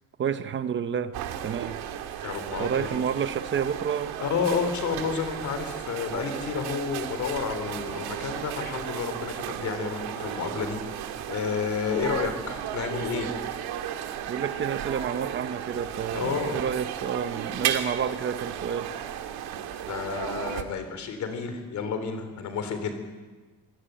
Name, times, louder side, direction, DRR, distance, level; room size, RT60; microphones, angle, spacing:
voice 1, 0.2-1.1 1.4-1.8 2.6-4.2 14.3-18.9, right 7 dB, 30° right, 11 dB, 0.9 m, -29 dB
sound 1, 1.1-20.6, right 10 dB, 80° right, 2.1 m, -34 dB
voice 2, 2.2-2.9 4.2-10.8 11.3-13.3 16.1-16.6 19.8-23.0, left 6 dB, 50° left, 8 dB, 3.6 m, -30 dB
26.0 x 17.0 x 9.1 m, 1.3 s
cardioid pair, 180°, 37 cm